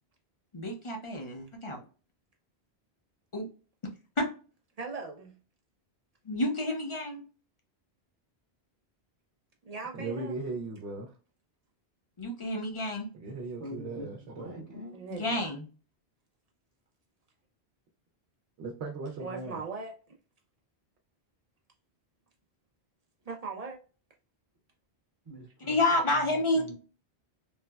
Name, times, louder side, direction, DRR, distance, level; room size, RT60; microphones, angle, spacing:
voice 1, 0.5-1.8 3.3-3.5 4.2-4.3 6.3-7.2 12.2-13.1 15.1-15.6 25.7-26.6, left 1 dB, 40° left, 0.5 m, -29 dB
voice 2, 4.8-5.3 9.6-10.3 14.9-15.5 19.2-20.0 23.3-23.8, right 4 dB, 55° right, 0.4 m, -39 dB
voice 3, 9.9-11.1 13.1-14.5 18.6-19.6, right 3 dB, 85° right, 0.8 m, -38 dB
voice 4, 13.6-15.0 25.2-25.8 26.1-26.7, right 1 dB, 35° right, 0.9 m, -44 dB
3.1 x 2.1 x 2.2 m
omnidirectional pair, 1.1 m